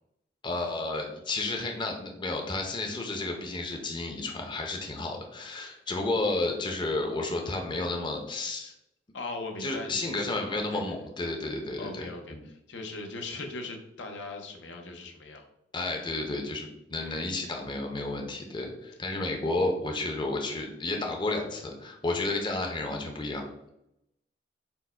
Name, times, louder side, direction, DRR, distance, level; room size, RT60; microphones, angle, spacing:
voice 1, 0.4-8.7 9.6-12.0 12.3-12.4 15.7-23.7, left 2 dB, 25° left, 2 dB, 0.6 m, -32 dB
voice 2, 9.1-11.1 11.8-15.5 17.0-17.2 18.4-18.7, left 2 dB, 80° left, 3 dB, 0.7 m, -40 dB
4.4 x 2.1 x 4.3 m, 0.82 s
head